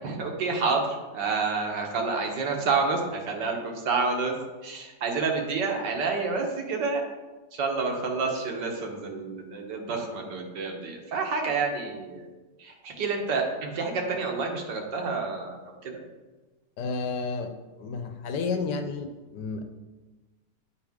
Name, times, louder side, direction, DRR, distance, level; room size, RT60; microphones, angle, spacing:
voice 1, 0.0-4.4 4.6-7.0 7.5-12.3 12.6-16.0, right 4 dB, 80° right, 2 dB, 1.7 m, -29 dB
voice 2, 16.8-17.5 17.8-19.6, left 4 dB, 80° left, 7 dB, 1.3 m, -31 dB
9.0 x 4.9 x 3.5 m, 1.2 s
omnidirectional pair, 1.8 m